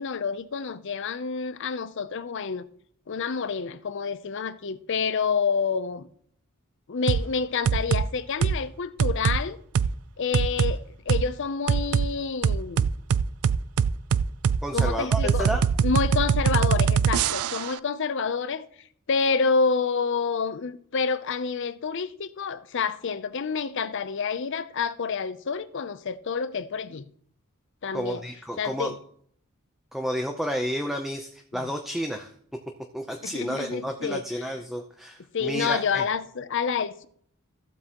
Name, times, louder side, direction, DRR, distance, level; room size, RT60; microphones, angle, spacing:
voice 1, 0.0-2.7 3.1-6.1 6.9-9.6 10.2-12.9 14.7-15.5 15.8-18.7 19.1-27.1 27.8-28.2 28.6-29.0 31.5-31.7 33.2-34.5 35.3-37.1, left 5 dB, 55° left, 0.5 m, -28 dB
sound 1, 7.1-7.3 7.7-8.1 8.4-8.6 9.0-9.4 9.8-9.9 10.3-10.7 11.1-11.2 11.7-12.1 12.4-17.7, right 7 dB, 80° right, 0.4 m, -22 dB
voice 2, 14.6-15.7 27.9-28.9 29.9-32.3 32.9-36.0, equal, ahead, 0.6 m, -31 dB
15.0 x 7.7 x 3.0 m
head